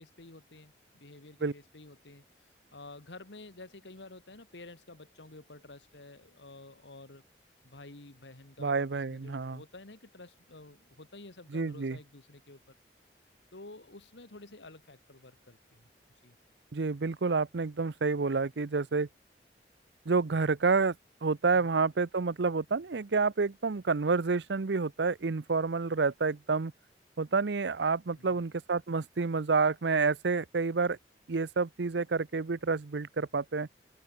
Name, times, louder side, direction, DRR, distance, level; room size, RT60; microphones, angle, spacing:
voice 1, 0.0-7.2 7.6-12.7 13.5-15.9 16.2-16.4 21.5-21.7 28.2-28.4, left 2 dB, 90° left, 2.1 m, -51 dB
voice 2, 8.6-9.6 11.5-12.0 16.7-19.1 20.1-20.9 21.2-26.7 27.2-31.0 31.3-33.7, right 4 dB, 80° right, 0.7 m, -29 dB
head